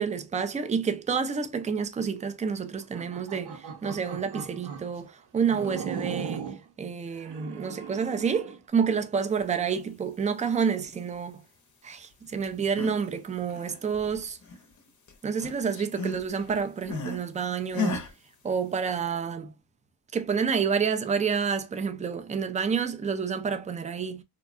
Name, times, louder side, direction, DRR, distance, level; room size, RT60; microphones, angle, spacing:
voice 1, 0.0-6.5 6.8-11.4 11.8-14.4 15.2-18.1 18.4-19.5 20.1-24.2, right 6 dB, 20° right, 0.3 m, -29 dB
sound 1, 2.8-4.9 5.5-6.6 7.2-8.6, right 6 dB, 55° right, 0.7 m, -38 dB
sound 2, 12.5-13.1 13.4-14.8 15.1-17.3 17.7-18.1, left 4 dB, 40° left, 0.6 m, -34 dB
2.6 x 2.1 x 2.4 m
cardioid pair, 80°, 46 cm